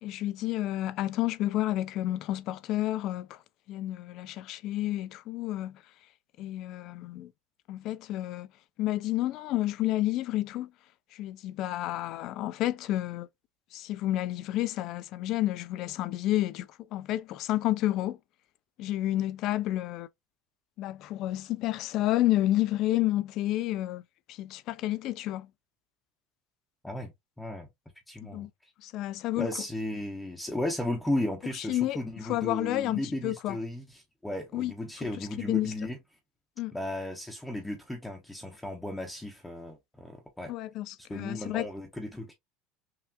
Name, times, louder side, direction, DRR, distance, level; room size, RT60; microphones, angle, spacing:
voice 1, 0.0-3.4 3.7-5.8 6.4-7.3 7.7-8.5 8.8-10.7 11.1-13.3 13.7-18.2 18.8-20.1 20.8-24.0 24.3-25.5 28.3-28.5 28.8-29.5 31.6-32.0 32.2-33.6 34.5-34.7 35.2-35.7 36.6-36.7 40.5-41.7, left 15 dB, 45° left, 0.3 m, -30 dB
voice 2, 27.4-27.7 28.1-28.7 29.4-36.0 36.7-40.5 41.1-42.3, left 1 dB, 5° left, 0.6 m, -35 dB
5.6 x 2.3 x 2.2 m
cardioid pair, 165°, 0 cm